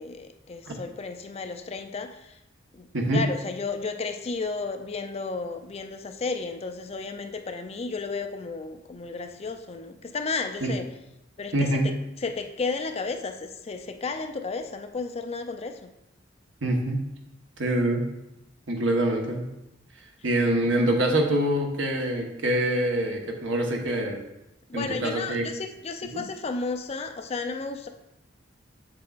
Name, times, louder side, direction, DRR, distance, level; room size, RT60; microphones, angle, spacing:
voice 1, 0.0-2.4 2.7-10.9 11.4-15.9 24.7-27.9, left 4 dB, 30° left, 7 dB, 0.4 m, -33 dB
voice 2, 11.5-11.9 16.6-17.0 17.6-18.1 18.7-19.5 20.2-24.2 24.7-25.4 26.1-26.2, right 1 dB, 75° right, 1 dB, 1.1 m, -25 dB
7.5 x 7.1 x 2.4 m, 0.88 s
head